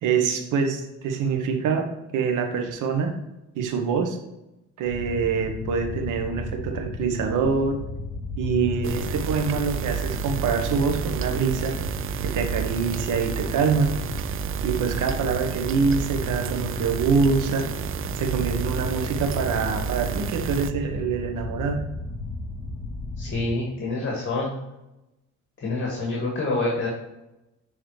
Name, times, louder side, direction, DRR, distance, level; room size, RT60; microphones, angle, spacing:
voice 1, 0.0-1.9 2.1-3.1 3.5-4.2 4.8-7.8 8.4-11.7 12.2-13.9 14.6-17.7 18.1-21.8, right 5 dB, 90° right, 4 dB, 1.2 m, -25 dB
sound 1, 4.8-23.4, left 2 dB, 5° left, 2.2 m, -34 dB
sound 2, 8.8-20.7, right 9 dB, 45° right, 0.4 m, -31 dB
voice 2, 23.2-24.5 25.6-26.9, left 2 dB, 40° left, -3 dB, 2.1 m, -27 dB
9.3 x 3.9 x 3.2 m, 0.94 s
cardioid pair, 90°, 30 cm